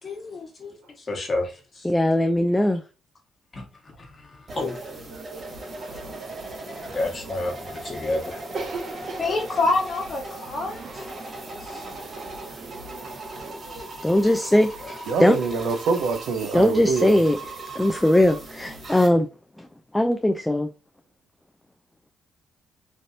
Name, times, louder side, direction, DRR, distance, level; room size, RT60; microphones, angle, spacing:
voice 1, 0.0-1.9 3.5-3.6 4.0-4.8 6.8-8.4 9.2-11.0 11.6-11.8 13.7-13.8, left 2 dB, 35° left, 1.3 m, -29 dB
voice 2, 1.8-2.8 14.0-15.4 16.5-17.4 17.8-19.3 19.6-19.7 19.9-20.7, left 1 dB, 10° left, 0.3 m, -20 dB
sound 1, 4.5-19.1, right 1 dB, 35° right, 1.6 m, -39 dB
voice 3, 4.9-5.4 5.8-7.5 11.4-11.8 13.6-13.9 14.2-14.3 14.8-17.2, right 5 dB, 80° right, 0.6 m, -29 dB
sound 2, 5.3-13.6, right 3 dB, 55° right, 1.0 m, -40 dB
3.2 x 2.7 x 2.6 m
cardioid pair, 90°, 0 cm